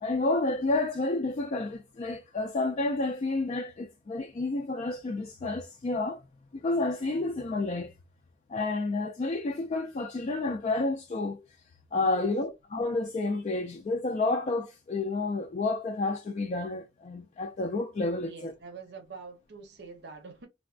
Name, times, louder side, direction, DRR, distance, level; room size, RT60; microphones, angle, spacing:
voice 1, 0.0-6.2 6.6-7.9 8.5-11.4 11.9-18.5, left 2 dB, 40° left, 0.3 m, -30 dB
voice 2, 18.2-20.5, right 4 dB, 65° right, 0.8 m, -45 dB
3.3 x 2.1 x 2.4 m
head